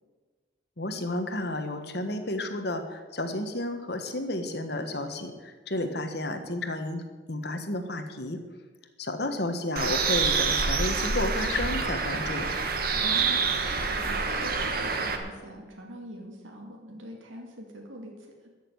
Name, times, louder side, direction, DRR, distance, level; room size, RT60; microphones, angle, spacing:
voice 1, 0.8-7.0 7.3-8.4 9.0-12.5, left 1 dB, 55° left, 6 dB, 1.5 m, -31 dB
Bird, 9.8-15.2, right 4 dB, 50° right, 1.4 m, -27 dB
voice 2, 13.0-18.1, equal, 90° right, 1 dB, 2.5 m, -43 dB
14.0 x 6.8 x 9.5 m, 1.4 s
head